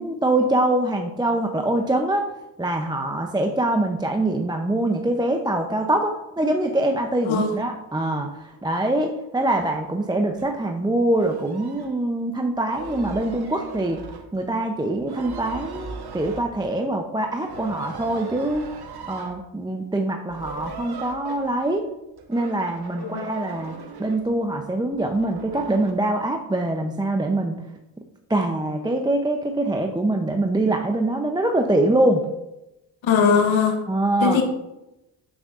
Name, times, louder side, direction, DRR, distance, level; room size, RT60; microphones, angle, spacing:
voice 1, 0.0-2.2 2.6-14.0 14.3-18.6 19.1-21.9 22.3-23.7 24.0-27.6 28.3-32.2 33.9-34.4, right 1 dB, 10° right, 4 dB, 0.5 m, -24 dB
voice 2, 7.3-7.6 23.0-23.2 33.0-33.8 34.2-34.4, left 6 dB, 70° left, 4 dB, 1.1 m, -20 dB
sound 1, 8.5-8.6 9.6-9.8 10.3-10.6 11.0-12.0 12.6-14.5 15.0-16.8 17.4-19.4 20.3-21.8 22.2-24.4 24.9-25.9, right 4 dB, 50° right, 1.0 m, -39 dB
6.6 x 6.2 x 2.5 m, 0.92 s
supercardioid pair, 55°, 49 cm